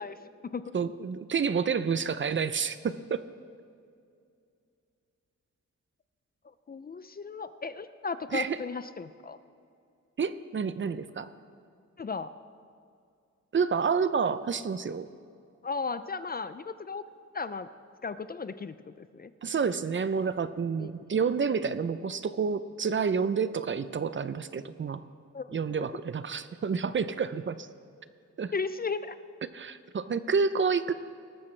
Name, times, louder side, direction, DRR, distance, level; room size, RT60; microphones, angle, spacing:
voice 1, 0.0-0.7 6.4-9.4 12.0-12.3 15.6-17.0 17.3-17.7 18.0-19.3 20.8-20.9 25.3-25.6 28.5-29.2, left 4 dB, 35° left, 13 dB, 0.4 m, -35 dB
voice 2, 0.7-3.2 8.3-8.6 10.2-11.3 13.5-15.1 19.4-25.0 25.5-27.7 28.4-28.5 29.5-30.9, right 6 dB, 40° right, 13 dB, 0.5 m, -29 dB
19.0 x 13.5 x 3.2 m, 2.4 s
wide cardioid pair, 140°, 29 cm